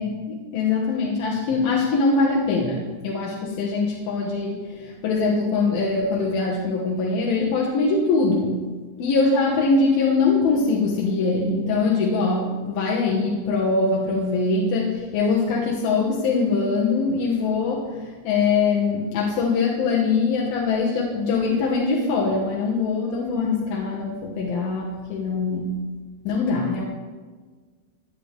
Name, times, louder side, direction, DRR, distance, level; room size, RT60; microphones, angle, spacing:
voice 1, 0.0-8.7 9.0-25.9 26.2-26.9, left 4 dB, 90° left, -4 dB, 3.3 m, -22 dB
21.5 x 8.2 x 3.4 m, 1.4 s
omnidirectional pair, 4.1 m